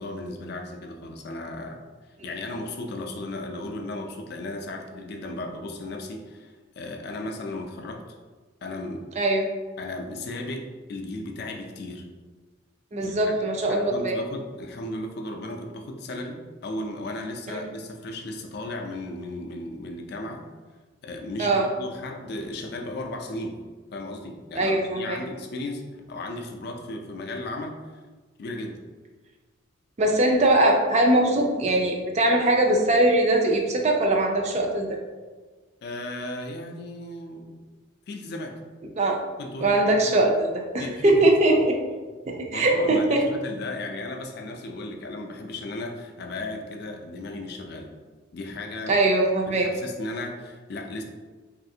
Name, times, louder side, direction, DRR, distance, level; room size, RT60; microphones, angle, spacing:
voice 1, 0.0-1.8 2.2-8.2 8.6-9.1 9.8-12.1 13.0-20.5 21.0-23.6 23.9-27.8 28.4-28.8 35.8-37.6 38.1-38.6 39.4-40.1 40.8-41.2 42.4-47.9 48.3-49.0 49.5-51.0, left 2 dB, 55° left, 3 dB, 0.4 m, -35 dB
voice 2, 9.2-9.5 12.9-14.1 17.5-17.6 21.4-21.7 24.6-25.2 30.0-35.0 39.0-39.2 39.6-41.7 42.3-43.2 48.9-49.7, right 2 dB, 35° right, 1 dB, 0.4 m, -21 dB
3.3 x 2.5 x 2.7 m, 1.4 s
head